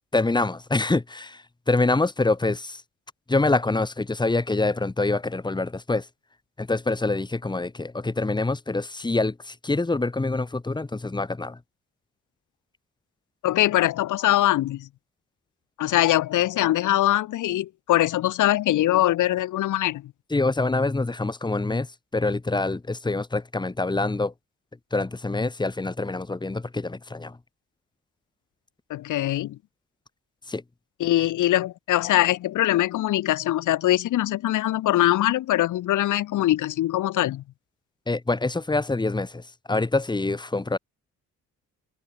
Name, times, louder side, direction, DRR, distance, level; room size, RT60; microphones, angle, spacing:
voice 1, 0.1-2.8 3.3-6.1 6.6-11.6 20.3-21.9 22.1-24.3 24.9-27.4 30.5-30.6 38.1-40.8, left 3 dB, 15° left, 1.8 m, -25 dB
voice 2, 13.4-14.9 15.8-20.1 28.9-29.6 31.0-37.4, left 14 dB, 85° left, 3.4 m, -22 dB
cardioid pair, 90°, 30 cm